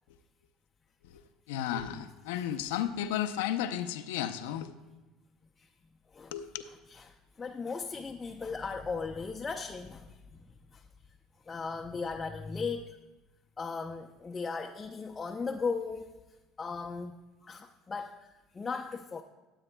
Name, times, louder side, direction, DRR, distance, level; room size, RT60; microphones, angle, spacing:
voice 1, 1.5-4.7 6.3-6.5, left 10 dB, 85° left, 7 dB, 0.6 m, -33 dB
voice 2, 6.9-10.8 11.4-13.0 13.6-16.1 16.6-19.2, left 4 dB, 25° left, 2 dB, 0.6 m, -37 dB
19.0 x 7.9 x 2.2 m, 1.1 s
supercardioid pair, 85°, 0 cm